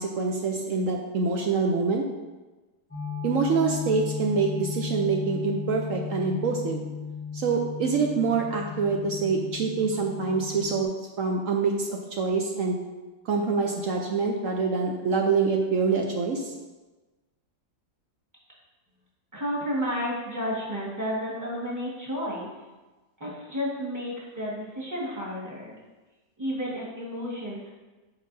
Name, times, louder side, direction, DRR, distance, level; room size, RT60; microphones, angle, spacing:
voice 1, 0.0-2.0 3.2-6.8 7.3-10.9 11.2-12.8 13.3-16.5, right 4 dB, 65° right, 1 dB, 0.9 m, -26 dB
sound 1, 2.9-10.8, left 6 dB, 10° left, 1.0 m, -35 dB
voice 2, 19.3-22.5 23.2-25.8 26.4-27.7, equal, 10° right, -5 dB, 1.4 m, -31 dB
9.0 x 4.6 x 2.6 m, 1.2 s
omnidirectional pair, 1.8 m